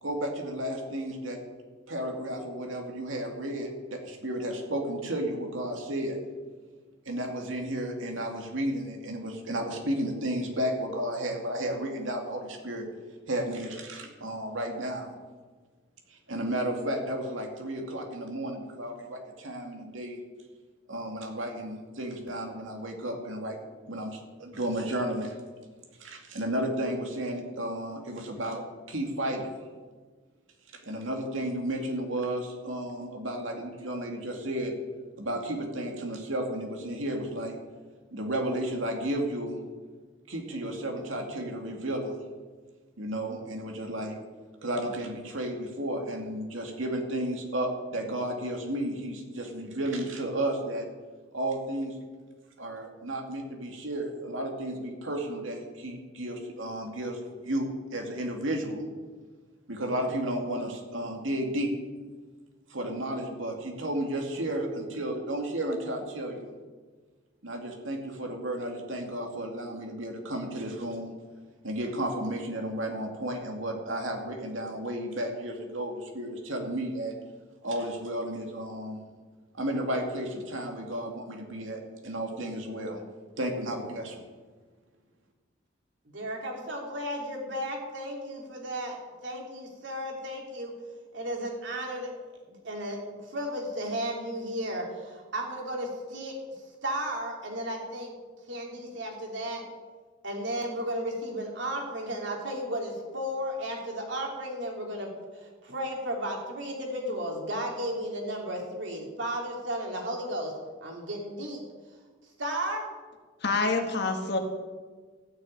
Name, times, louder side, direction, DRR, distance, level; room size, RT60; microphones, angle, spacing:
voice 1, 0.0-1.4 1.9-6.2 7.1-12.9 13.3-15.1 16.1-20.2 20.9-23.6 23.9-25.4 26.0-29.5 30.8-34.7 35.2-37.6 38.1-39.6 40.3-42.1 43.0-44.2 44.6-50.9 51.3-52.0 52.6-58.8 59.7-61.7 62.7-66.5 67.4-71.2 71.6-77.2 77.6-79.0 79.6-83.0 83.4-84.2, right 1 dB, 85° right, 2 dB, 2.4 m, -33 dB
voice 2, 86.1-89.0 89.2-90.7 91.1-92.1 92.5-93.0 93.3-96.4 96.8-98.1 98.5-99.6 100.2-110.5 110.8-111.6 112.4-112.8, equal, 65° right, 0 dB, 3.0 m, -34 dB
voice 3, 113.4-114.4, left 3 dB, 60° left, 4 dB, 1.6 m, -27 dB
14.0 x 6.7 x 8.9 m, 1.4 s
head